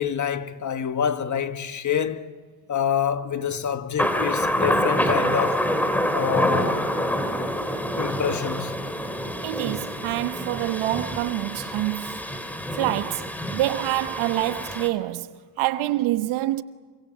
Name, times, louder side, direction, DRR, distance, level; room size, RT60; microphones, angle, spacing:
voice 1, 0.0-2.3 2.7-5.7 6.1-6.8 8.0-8.7, left 8 dB, 35° left, 1.8 m, -27 dB
Thunder, 4.0-14.9, equal, 5° left, 3.2 m, -26 dB
voice 2, 9.4-12.2 12.7-16.6, right 16 dB, 80° right, 1.3 m, -26 dB
27.5 x 26.0 x 7.5 m
cardioid pair, 110°, 48 cm